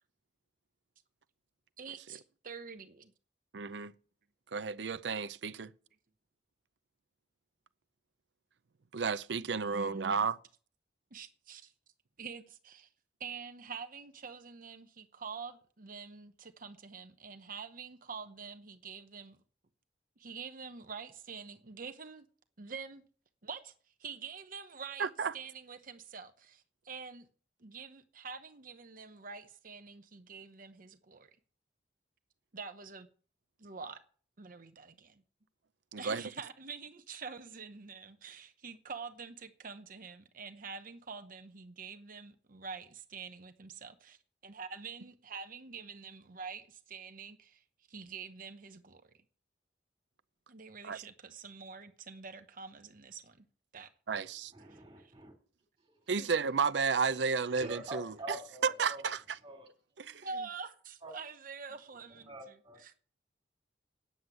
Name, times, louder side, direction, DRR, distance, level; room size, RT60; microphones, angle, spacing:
voice 1, 1.8-3.1 9.5-10.2 11.1-11.7 12.2-12.9 13.2-19.4 20.2-22.3 22.6-23.1 23.4-23.7 24.0-25.1 25.3-27.3 27.6-31.3 32.5-33.1 33.6-34.0 34.4-35.2 36.0-49.0 50.5-53.5 53.7-54.3 54.7-55.1 56.2-56.3 57.5-57.8 60.1-63.0, right 5 dB, 50° right, 0.9 m, -46 dB
voice 2, 3.5-3.9 4.5-5.7 8.9-10.4 25.0-25.3 35.9-36.2 50.8-51.0 54.1-54.5 56.1-58.4 58.6-59.2 60.0-60.3, right 5 dB, 75° right, 0.6 m, -32 dB
voice 3, 54.5-55.3 55.8-56.1 57.5-59.1 59.4-59.7 61.0-61.1 62.2-62.8, right 1 dB, 25° right, 3.4 m, -46 dB
9.4 x 7.9 x 8.2 m
head